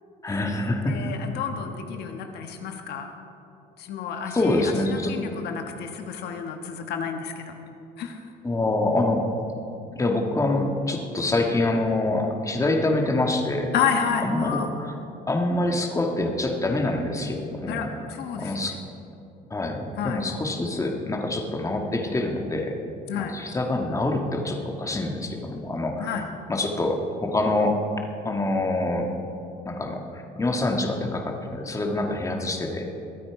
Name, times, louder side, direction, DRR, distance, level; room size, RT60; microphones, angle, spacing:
voice 1, 0.2-1.0 4.3-5.1 8.4-9.2 9.9-13.7 14.2-14.9 15.3-17.8 18.4-18.8 19.5-22.8 23.1-26.2 26.5-27.8 28.2-29.2 29.7-32.9, left 2 dB, 20° left, 2 dB, 1.7 m, -26 dB
voice 2, 0.9-3.1 3.8-7.5 8.0-8.2 13.7-14.7 17.7-18.6 20.0-20.2 23.1-23.3 26.0-26.2, left 7 dB, 75° left, 4 dB, 1.3 m, -30 dB
22.0 x 8.8 x 4.8 m, 2.8 s
cardioid pair, 110°, 17 cm